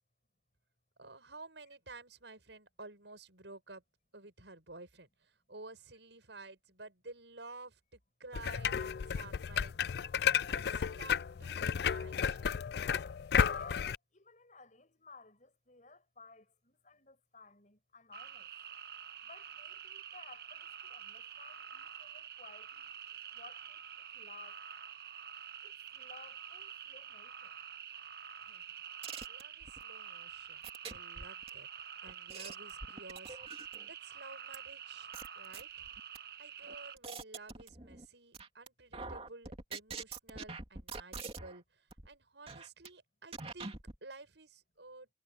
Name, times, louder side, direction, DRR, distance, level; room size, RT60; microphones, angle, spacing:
voice 1, 1.0-3.8 4.1-9.9 10.5-12.6 28.4-28.6 29.3-31.7 32.0-33.4 33.9-35.9 36.4-45.1, right 3 dB, 85° right, 6.6 m, -53 dB
sound 1, 8.3-14.0, left 7 dB, 60° left, 0.4 m, -32 dB
voice 2, 13.5-18.5 19.2-24.6 25.6-27.5, left 3 dB, 45° left, 7.3 m, -57 dB
sound 2, 18.1-36.9, right 8 dB, 60° right, 1.3 m, -48 dB
sound 3, 29.0-29.8 30.6-31.5 32.1-33.9 34.5-34.6 35.1-36.2 36.7-38.1 38.3-38.7 38.9-41.6 41.9-42.1 42.5-42.9 43.3-44.0, right 4 dB, 35° right, 2.8 m, -45 dB
head